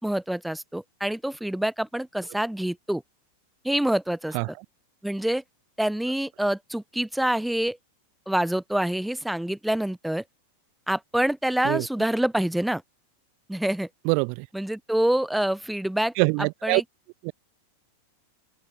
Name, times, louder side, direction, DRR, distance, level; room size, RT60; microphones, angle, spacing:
voice 1, 0.0-3.0 3.6-4.4 5.0-5.4 5.8-7.8 8.3-10.2 10.9-12.8 13.5-13.9 14.5-16.1 16.6-16.8, right 1 dB, ahead, 2.8 m, -26 dB
voice 2, 4.3-4.6 11.6-11.9 14.0-14.5 16.2-16.8 17.2-17.3, right 39 dB, 45° right, 2.1 m, -24 dB
open air
figure-of-eight pair, 90°, 0 cm